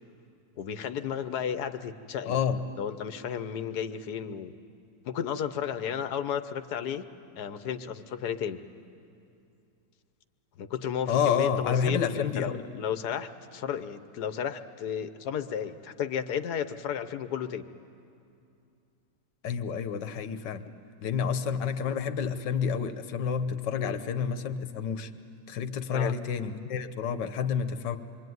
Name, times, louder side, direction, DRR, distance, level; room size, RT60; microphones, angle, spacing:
voice 1, 0.6-2.4 2.8-4.5 5.0-7.1 7.4-8.6 10.6-17.6 23.8-24.0 25.9-26.1, left 8 dB, 70° left, 10 dB, 1.4 m, -33 dB
voice 2, 2.3-2.6 11.1-12.6 19.4-20.7 21.0-25.1 25.5-28.0, left 7 dB, 90° left, 10 dB, 1.7 m, -29 dB
26.5 x 23.0 x 9.4 m, 2.6 s
omnidirectional pair, 1.8 m